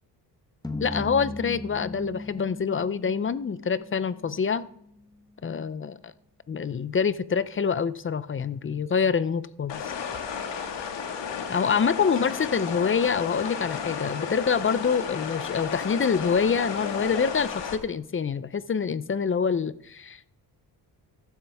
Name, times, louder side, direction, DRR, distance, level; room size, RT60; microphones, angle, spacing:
sound 1, 0.6-5.0, left 2 dB, 10° left, 1.1 m, -38 dB
voice 1, 0.8-4.7 5.4-6.1 6.5-9.9 11.5-20.3, left 6 dB, 30° left, 16 dB, 0.6 m, -26 dB
sound 2, 9.7-17.8, left 6 dB, 90° left, 1.9 m, -33 dB
15.0 x 11.5 x 3.5 m, 0.71 s
cardioid pair, 110°, 42 cm